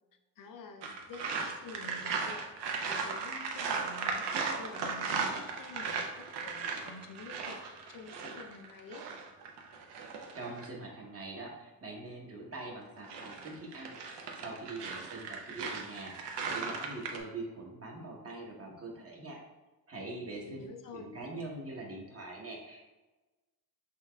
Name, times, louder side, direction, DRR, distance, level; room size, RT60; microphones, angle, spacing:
voice 1, 0.4-9.1 20.4-21.1, left 4 dB, 55° left, 4 dB, 0.5 m, -49 dB
sound 1, 0.8-10.7 12.8-17.2, right 5 dB, 85° right, 0.7 m, -37 dB
voice 2, 9.9-14.0 14.4-19.4 19.9-20.6 20.9-22.9, right 2 dB, 35° right, -1 dB, 0.9 m, -43 dB
5.5 x 2.8 x 2.2 m, 1.1 s
cardioid pair, 95°, 41 cm